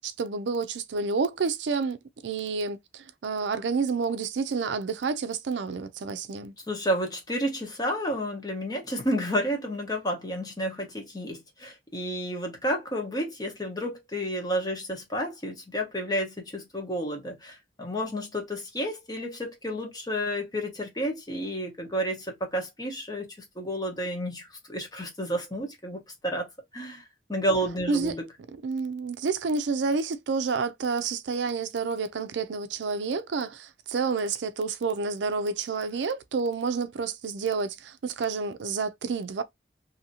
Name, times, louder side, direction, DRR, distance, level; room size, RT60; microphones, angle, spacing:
voice 1, 0.0-2.0 2.2-6.5 27.9-28.1 28.6-39.4, right 4 dB, 85° right, 0.4 m, -29 dB
voice 2, 6.7-23.3 23.6-26.5 26.7-27.0 27.3-28.2, equal, 25° left, 1.0 m, -31 dB
2.8 x 2.7 x 2.7 m
head